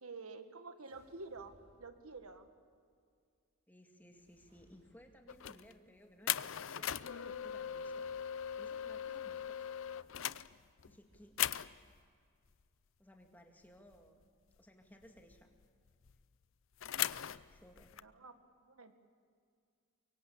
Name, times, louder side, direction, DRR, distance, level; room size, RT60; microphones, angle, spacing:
voice 1, 0.0-2.5 9.1-9.2 18.0-18.9, right 3 dB, 85° right, 8 dB, 1.7 m, -50 dB
sound 1, 0.9-2.5 3.9-5.4 8.0-8.8 11.1-12.2, equal, 30° right, 7.0 m, -70 dB
voice 2, 3.7-8.1 8.6-9.7 9.9-10.2 10.9-11.4 13.0-14.2 14.6-15.5 17.5-17.9, equal, 10° left, 3 dB, 2.1 m, -60 dB
sound 2, 5.3-5.7 6.3-11.0 11.4-11.9 13.9-14.2 14.5-14.6 15.0-16.1 16.8-18.0, left 10 dB, 65° left, 0.6 m, -39 dB
24.0 x 23.0 x 8.6 m, 2.2 s
head